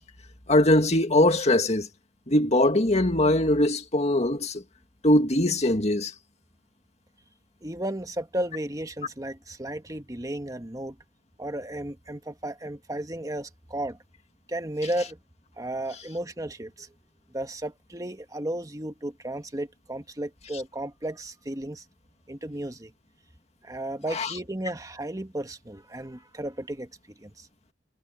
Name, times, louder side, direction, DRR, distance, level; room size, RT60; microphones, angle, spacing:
voice 1, 0.5-1.9 2.3-4.6 5.0-6.1 24.1-24.3, left 1 dB, 35° left, 2.1 m, -21 dB
voice 2, 7.6-11.0 11.4-14.0 14.5-15.2 15.6-16.9 17.3-21.8 22.3-22.9 23.6-26.9 27.2-27.5, right 1 dB, 20° right, 1.4 m, -34 dB
head